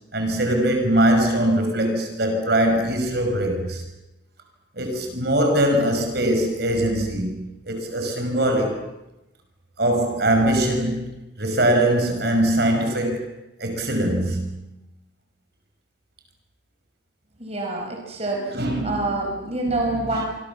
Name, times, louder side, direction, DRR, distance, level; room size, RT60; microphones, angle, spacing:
voice 1, 0.1-3.8 4.8-8.8 9.8-13.3 13.6-14.7 18.5-19.1 19.4-20.2, right 1 dB, 55° right, 6.0 m, -22 dB
voice 2, 17.4-18.6 18.8-20.2, right 2 dB, 35° right, 5.2 m, -26 dB
29.0 x 25.0 x 7.3 m
head